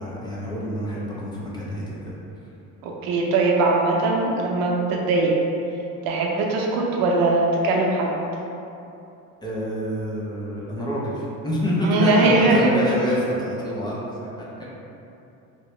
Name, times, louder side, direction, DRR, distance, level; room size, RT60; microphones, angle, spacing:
voice 1, 0.0-2.2 9.4-14.7, equal, 10° left, -6 dB, 0.5 m, -27 dB
voice 2, 2.8-5.4 6.0-8.1 11.8-12.7, right 2 dB, 85° right, -1 dB, 0.6 m, -20 dB
3.1 x 2.7 x 3.1 m, 2.8 s
cardioid pair, 135°, 34 cm